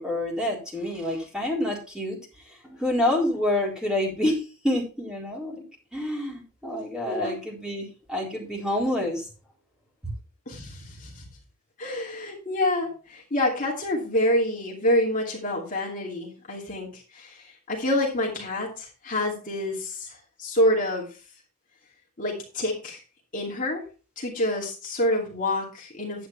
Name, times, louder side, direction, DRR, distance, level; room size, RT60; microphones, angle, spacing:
voice 1, 0.0-2.2 2.5-5.6 5.9-9.3 10.0-10.1, left 1 dB, 5° right, -3 dB, 4.1 m, -28 dB
voice 2, 7.1-7.4 10.5-11.3 11.8-21.1 22.2-23.0 23.3-23.8 24.2-26.3, left 1 dB, 35° left, -2 dB, 2.6 m, -27 dB
11.0 x 8.9 x 3.3 m, 0.34 s
head